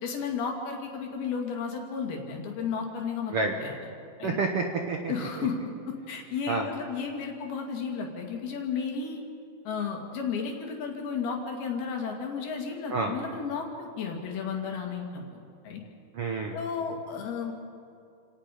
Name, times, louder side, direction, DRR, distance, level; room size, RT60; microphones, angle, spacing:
voice 1, 0.0-3.3 3.6-3.7 4.2-4.4 5.1-5.6 5.9-9.2 9.7-15.2 15.6-15.8 16.5-17.5, left 6 dB, 90° left, 1 dB, 4.3 m, -33 dB
voice 2, 4.2-5.5 6.5-6.7 12.9-13.1 16.1-16.6, right 3 dB, 65° right, 2 dB, 1.5 m, -29 dB
29.5 x 17.5 x 5.0 m, 2.5 s
omnidirectional pair, 4.3 m